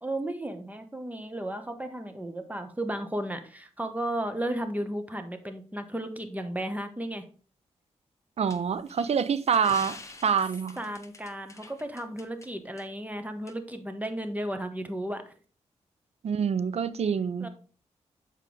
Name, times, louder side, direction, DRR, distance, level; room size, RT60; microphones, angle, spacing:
voice 1, 0.0-7.2 10.8-15.2 17.4-17.5, right 1 dB, 15° right, 1.1 m, -34 dB
voice 2, 8.4-10.0 10.2-10.8 16.2-17.5, right 7 dB, 60° right, 0.5 m, -26 dB
sound 1, 8.5-12.5 12.8-12.9 13.5-13.6, left 2 dB, 25° left, 1.1 m, -46 dB
6.7 x 4.9 x 3.9 m
cardioid pair, 70°, 12 cm